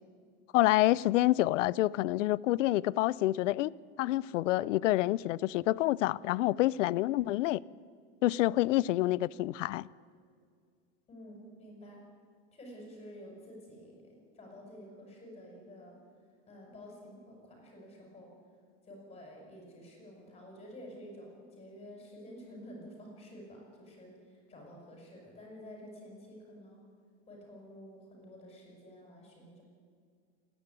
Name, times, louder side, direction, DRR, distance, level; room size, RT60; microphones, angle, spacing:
voice 1, 0.5-3.7 4.0-7.6 8.2-9.9, left 16 dB, 85° left, 0.6 m, -27 dB
voice 2, 11.1-12.0 12.5-15.9 16.5-18.3 18.8-26.8 27.3-29.6, equal, 15° left, 5.8 m, -50 dB
28.0 x 10.5 x 9.3 m
supercardioid pair, 160°, 36 cm